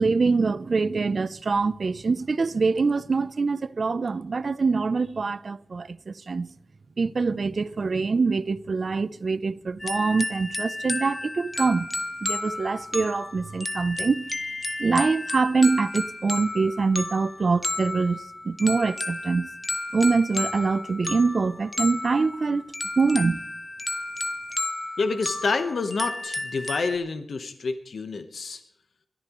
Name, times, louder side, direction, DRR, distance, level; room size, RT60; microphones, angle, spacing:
voice 1, 0.0-6.5 7.0-11.9 12.2-14.2 14.8-19.5 19.9-22.6 23.0-23.4, right 4 dB, 60° right, 0.6 m, -24 dB
sound 1, 9.8-27.0, left 2 dB, 25° left, 1.0 m, -32 dB
voice 2, 25.0-28.6, left 4 dB, 80° left, 1.1 m, -28 dB
22.0 x 14.0 x 3.1 m
wide cardioid pair, 70°, 0 cm